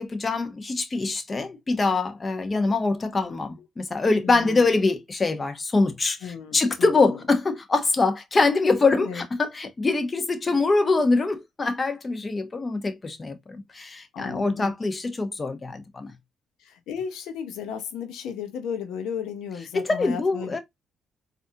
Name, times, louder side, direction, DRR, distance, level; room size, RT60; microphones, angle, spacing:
voice 1, 0.0-13.4 13.7-16.1 19.7-20.6, left 3 dB, 30° left, 0.9 m, -24 dB
voice 2, 4.2-4.8 6.2-7.2 9.0-9.2 14.1-14.7 16.6-20.6, left 7 dB, 85° left, 0.7 m, -35 dB
4.0 x 2.5 x 2.7 m
cardioid pair, 90°, 0 cm